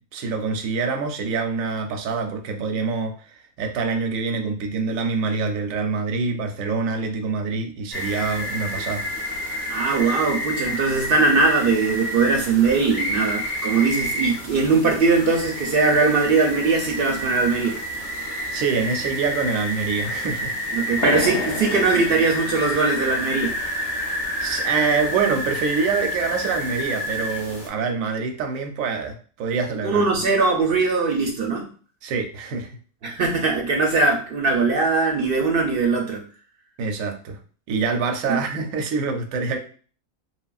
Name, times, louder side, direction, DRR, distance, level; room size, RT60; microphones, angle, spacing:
voice 1, 0.1-9.0 18.5-20.6 24.4-30.0 32.0-32.7 36.8-37.4 37.7-39.6, right 5 dB, 90° right, 4 dB, 1.0 m, -25 dB
sound 1, 7.9-27.7, left 1 dB, 30° left, 0.4 m, -29 dB
voice 2, 9.7-17.8 20.7-23.6 29.8-31.7 33.0-36.2 38.3-38.6, right 4 dB, 60° right, 1 dB, 0.6 m, -20 dB
sound 2, 21.0-26.2, left 2 dB, 60° left, 0.8 m, -34 dB
3.0 x 2.3 x 2.3 m, 0.41 s
omnidirectional pair, 1.3 m